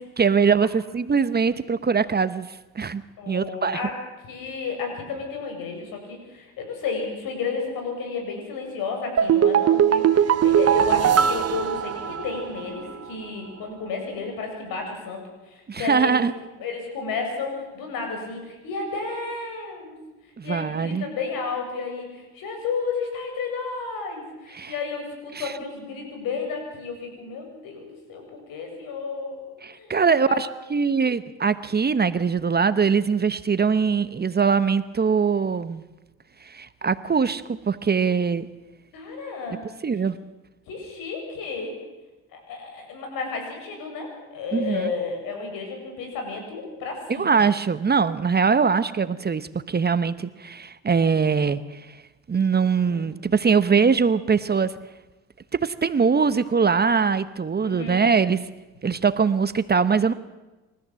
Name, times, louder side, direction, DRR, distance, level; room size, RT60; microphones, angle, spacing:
voice 1, 0.0-2.5 2.7-3.0 3.3-3.8 15.7-16.3 20.4-21.1 24.5-24.7 25.3-25.5 29.6-35.8 36.4-38.5 39.8-40.2 44.5-44.9 47.1-51.8 52.3-54.7 55.6-58.4 58.8-60.1, right 5 dB, 30° right, 14 dB, 1.0 m, -22 dB
voice 2, 3.2-4.0 4.2-15.2 15.5-16.2 16.6-20.0 20.4-29.4 29.6-30.4 38.9-39.6 40.7-41.8 42.3-47.4 52.9-53.0 57.6-58.1, left 4 dB, 70° left, 3 dB, 7.5 m, -32 dB
sound 1, 9.2-12.6 12.9-13.0, right 9 dB, 45° right, 1.3 m, -20 dB
27.5 x 14.5 x 7.7 m, 1.1 s
supercardioid pair, 75°, 35 cm